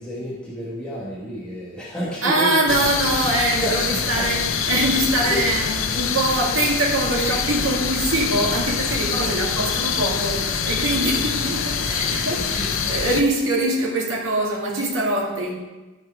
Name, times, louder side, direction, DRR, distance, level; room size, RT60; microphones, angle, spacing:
voice 1, 0.0-2.8 3.6-4.0 9.2-9.6 12.6-12.7, right 1 dB, 5° left, -8 dB, 1.6 m, -30 dB
voice 2, 2.2-15.5, right 2 dB, 80° right, -2 dB, 2.2 m, -23 dB
sound 1, 2.7-13.2, left 6 dB, 85° left, 0.7 m, -25 dB
13.5 x 4.6 x 4.6 m, 1.1 s
head